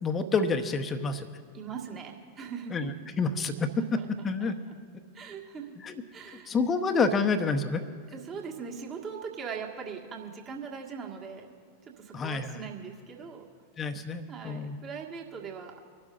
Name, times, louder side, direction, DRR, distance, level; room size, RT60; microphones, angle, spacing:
voice 1, 0.0-1.3 2.7-2.9 3.2-4.6 5.8-5.9 6.5-7.8 12.1-12.6 13.8-14.8, left 4 dB, 20° left, 8 dB, 1.0 m, -28 dB
voice 2, 1.5-2.9 3.6-3.7 4.0-4.1 4.4-4.7 5.1-5.8 6.1-6.5 8.1-11.5 11.8-13.5 14.3-15.7, right 6 dB, 25° right, 0 dB, 1.8 m, -40 dB
26.0 x 12.0 x 2.6 m, 2.2 s
figure-of-eight pair, 90°, 0 cm